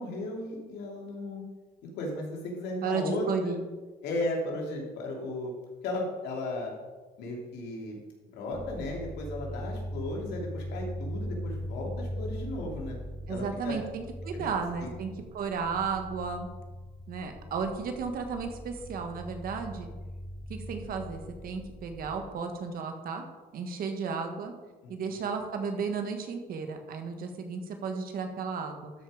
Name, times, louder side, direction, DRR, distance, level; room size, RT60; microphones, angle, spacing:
voice 1, 0.0-1.4 2.0-3.6 4.0-5.5 5.8-6.7 7.2-8.0 8.3-13.0 13.3-13.8 14.3-14.5 14.8-14.9 24.8-25.2, left 2 dB, 85° left, -1 dB, 2.9 m, -35 dB
voice 2, 2.8-3.6 13.3-15.1 15.3-16.5 17.1-19.9 20.5-23.3 23.5-24.5 24.9-28.9, right 5 dB, 60° right, 5 dB, 1.6 m, -33 dB
sound 1, 8.5-22.2, equal, 20° right, 2.3 m, -40 dB
12.5 x 5.4 x 5.0 m, 1.3 s
cardioid pair, 110°, 17 cm